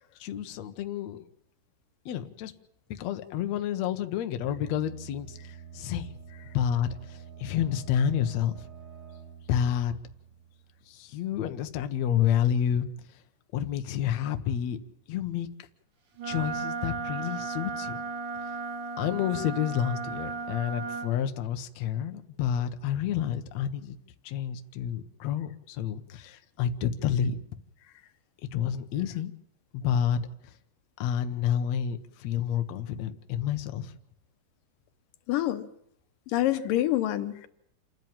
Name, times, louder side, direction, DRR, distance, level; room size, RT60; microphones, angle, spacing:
voice 1, 0.2-1.3 2.1-2.5 3.0-5.4 5.7-6.1 6.5-8.6 9.5-10.0 10.9-12.9 13.5-14.8 15.1-15.5 16.2-18.0 19.0-24.0 24.2-27.4 28.5-29.3 29.7-30.3 31.0-33.9, left 9 dB, 65° left, 8 dB, 2.1 m, -29 dB
sound 1, 4.4-11.0, right 7 dB, 20° right, 6.4 m, -47 dB
Wind instrument woodwind instrument, 16.2-21.1, right 4 dB, 85° right, 4.2 m, -35 dB
voice 2, 35.3-35.7 36.3-37.5, left 13 dB, 90° left, 11 dB, 2.7 m, -26 dB
27.5 x 11.0 x 8.9 m, 0.77 s
omnidirectional pair, 3.8 m